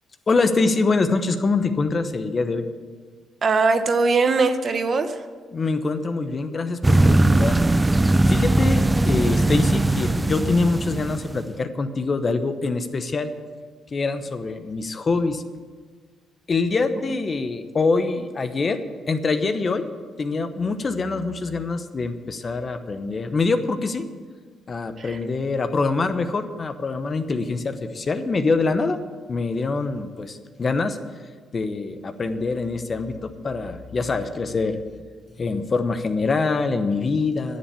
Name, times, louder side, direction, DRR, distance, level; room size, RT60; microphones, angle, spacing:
voice 1, 0.3-2.6 5.5-7.6 8.3-13.3 13.9-15.4 16.5-19.9 20.2-24.0 24.7-29.0 29.3-31.0 31.5-34.8 35.4-37.6, left 3 dB, 40° left, 9 dB, 0.9 m, -24 dB
voice 2, 3.4-5.2 25.0-25.2, right 4 dB, 45° right, 9 dB, 0.9 m, -21 dB
sound 1, 6.8-11.4, right 2 dB, 15° right, 0.4 m, -19 dB
10.5 x 7.3 x 8.5 m, 1.5 s
cardioid pair, 90°, 0 cm